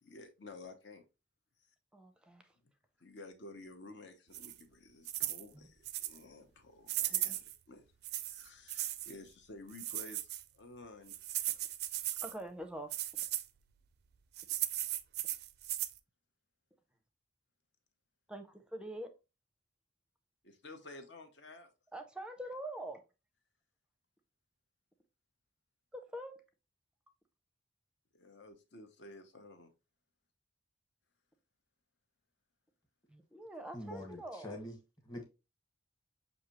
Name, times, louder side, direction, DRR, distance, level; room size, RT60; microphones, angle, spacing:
voice 1, 0.0-1.0 3.0-7.8 8.1-10.3 10.5-11.2 20.4-21.7 28.1-29.7, left 2 dB, 65° left, 0.9 m, -52 dB
voice 2, 1.9-2.5 5.5-5.7 7.1-7.4 12.2-12.9 18.3-19.1 21.9-23.0 25.9-26.3 33.1-34.5, right 1 dB, 5° right, 0.6 m, -45 dB
sound 1, 4.3-4.6 5.1-5.4 5.9-6.2 6.9-7.6 8.0-9.1 9.7-10.4 11.1-12.3 12.9-13.5 14.4-16.0, right 14 dB, 55° right, 0.4 m, -37 dB
voice 3, 33.7-34.8 35.0-35.2, left 1 dB, 20° left, 1.3 m, -44 dB
6.3 x 2.7 x 2.9 m
head